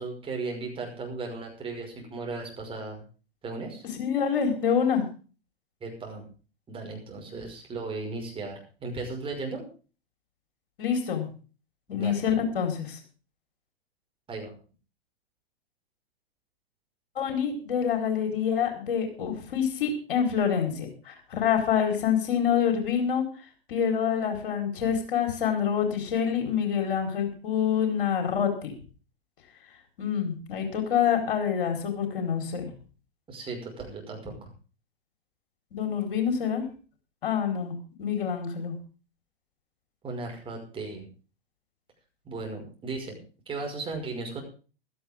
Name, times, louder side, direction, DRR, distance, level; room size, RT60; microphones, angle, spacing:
voice 1, 0.0-3.0 3.4-3.9 5.8-6.2 6.7-9.7 11.9-12.2 14.3-14.5 33.3-34.5 40.0-41.1 42.2-43.2 43.5-44.4, right 3 dB, 15° right, 1 dB, 5.7 m, -36 dB
voice 2, 4.0-5.1 10.8-11.3 11.9-13.0 17.2-23.2 23.7-28.7 30.0-32.7 35.7-36.6 37.2-38.7, left 8 dB, 60° left, 5 dB, 4.6 m, -26 dB
16.5 x 13.5 x 3.7 m, 0.37 s
figure-of-eight pair, 105°, 30 cm